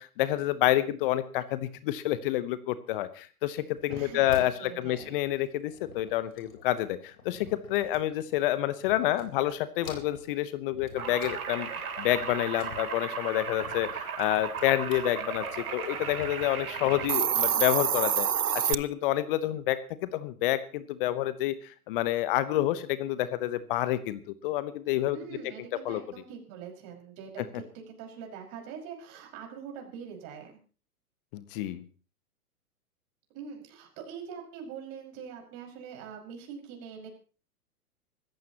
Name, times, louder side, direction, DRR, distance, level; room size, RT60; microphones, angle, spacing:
voice 1, 0.0-18.3 18.5-25.2 25.8-26.0 31.3-31.8, left 14 dB, 35° left, 15 dB, 1.0 m, -29 dB
sound 1, 3.8-8.5 8.8-9.5 9.8-11.4 11.7-17.1, left 5 dB, 60° left, 4.2 m, -47 dB
voice 2, 3.9-5.1 25.1-30.5 33.3-37.1, right 7 dB, 35° right, 1 dB, 5.7 m, -43 dB
sound 2, 11.0-17.1, right 6 dB, 70° right, 3.5 m, -36 dB
Hiss, 16.9-18.7, right 8 dB, 85° right, 0.8 m, -26 dB
25.5 x 14.5 x 3.0 m, 0.37 s
figure-of-eight pair, 115°, 44 cm